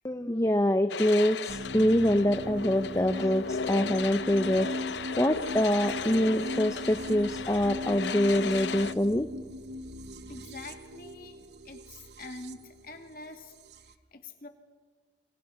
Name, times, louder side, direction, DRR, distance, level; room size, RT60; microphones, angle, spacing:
voice 1, 0.0-9.3, equal, 15° left, 9 dB, 0.7 m, -25 dB
sound 1, 0.9-8.9, left 5 dB, 80° left, 0.7 m, -36 dB
sound 2, 1.5-13.9, left 1 dB, 70° right, 1.1 m, -39 dB
voice 2, 10.3-11.4 11.6-13.5 13.9-14.5, left 2 dB, 50° left, 5 dB, 2.5 m, -45 dB
27.5 x 25.0 x 5.9 m, 1.5 s
head